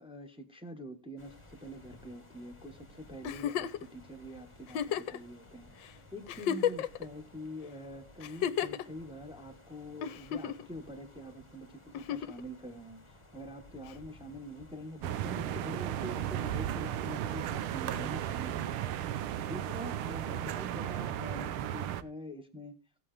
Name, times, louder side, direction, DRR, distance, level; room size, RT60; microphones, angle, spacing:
voice 1, 0.0-18.9 19.5-22.8, equal, 5° right, 4 dB, 1.2 m, -45 dB
sound 1, 1.2-21.1, left 2 dB, 15° left, 1.4 m, -56 dB
Giggle, 3.2-3.8 4.7-5.2 5.8-5.9 6.3-7.0 8.2-8.8 10.0-10.7 11.9-12.4 13.9-14.0, left 9 dB, 70° left, 1.4 m, -32 dB
sound 2, 15.0-22.0, right 11 dB, 85° right, 1.7 m, -35 dB
16.5 x 8.4 x 3.3 m, 0.32 s
omnidirectional pair, 2.3 m